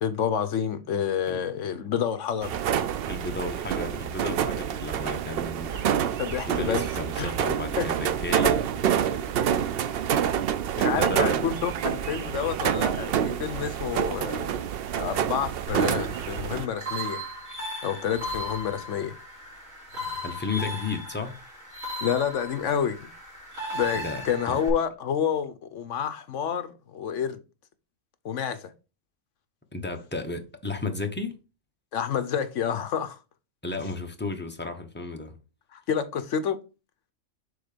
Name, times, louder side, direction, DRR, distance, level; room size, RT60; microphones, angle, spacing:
voice 1, 0.0-2.6 6.2-6.8 7.2-7.3 7.8-7.9 10.8-14.6 15.0-17.2 17.8-19.1 22.0-23.1 23.7-27.4 28.2-28.7 31.9-33.2 35.7-36.6, left 8 dB, 65° left, 1.1 m, -29 dB
sound 1, 2.4-16.7, right 9 dB, 60° right, 0.6 m, -27 dB
voice 2, 3.1-5.8 6.5-9.2 10.8-11.5 20.2-21.3 23.9-24.6 29.7-31.4 33.6-35.4, left 3 dB, 10° left, 0.8 m, -33 dB
sound 2, 15.7-24.7, equal, 90° right, 3.4 m, -37 dB
6.7 x 3.9 x 5.0 m
omnidirectional pair, 1.4 m